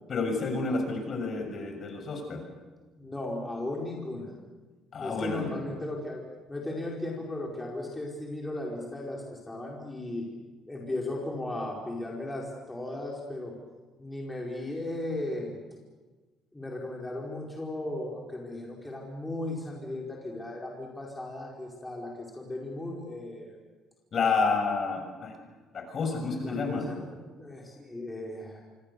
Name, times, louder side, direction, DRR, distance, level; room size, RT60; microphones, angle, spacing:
voice 1, 0.1-2.4 4.9-5.5 24.1-25.3 25.7-26.8, left 4 dB, 40° left, 4 dB, 6.5 m, -29 dB
voice 2, 3.0-4.3 5.0-6.2 6.5-10.3 10.6-13.6 14.0-15.6 16.5-23.5 26.2-28.6, left 1 dB, 10° left, -2 dB, 4.8 m, -36 dB
27.0 x 24.5 x 6.9 m, 1.3 s
cardioid pair, 115°, 0 cm